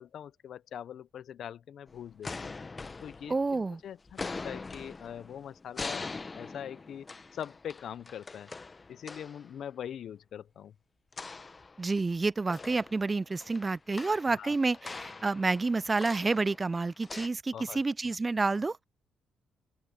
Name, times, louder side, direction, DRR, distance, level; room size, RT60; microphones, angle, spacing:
voice 1, 0.0-2.5 3.0-6.1 6.3-8.5 8.9-10.7 14.3-14.5 17.5-17.8, left 9 dB, 65° left, 0.7 m, -42 dB
sound 1, 1.9-3.7 4.1-9.5 11.1-12.2 12.5-17.3, left 3 dB, 25° left, 0.9 m, -43 dB
voice 2, 3.3-3.8 11.8-18.8, right 3 dB, 25° right, 0.3 m, -29 dB
open air
cardioid pair, 90°, 0 cm